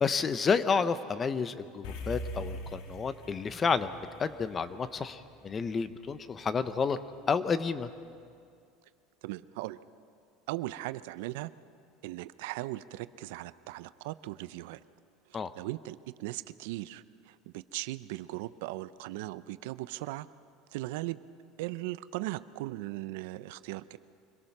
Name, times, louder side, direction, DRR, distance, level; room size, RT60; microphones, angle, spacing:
voice 1, 0.0-7.0 7.3-7.9 15.3-15.5, left 5 dB, 25° left, 13 dB, 0.8 m, -30 dB
sound 1, 1.8-6.4, equal, 70° left, 2.1 m, -43 dB
voice 2, 9.2-9.8 10.5-11.5 12.0-14.8 15.3-20.3 20.7-21.2 21.6-24.0, right 17 dB, 80° right, 15 dB, 0.5 m, -38 dB
25.0 x 17.5 x 6.0 m, 2.3 s
supercardioid pair, 125°, 0 cm